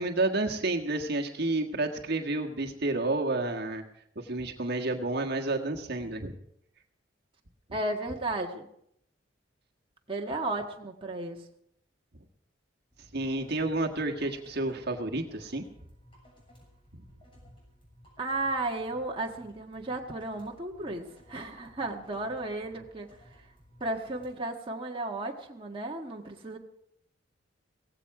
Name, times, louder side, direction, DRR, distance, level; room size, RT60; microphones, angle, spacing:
voice 1, 0.0-3.8 4.1-6.3 13.1-15.6 16.9-17.0, right 2 dB, 60° right, 2 dB, 1.6 m, -30 dB
voice 2, 7.7-8.7 10.1-11.4 18.2-23.5 23.8-26.6, right 2 dB, 30° right, 0 dB, 1.6 m, -34 dB
sound 1, 12.9-24.3, equal, 30° left, 7.1 m, -57 dB
17.5 x 15.5 x 4.8 m, 0.74 s
head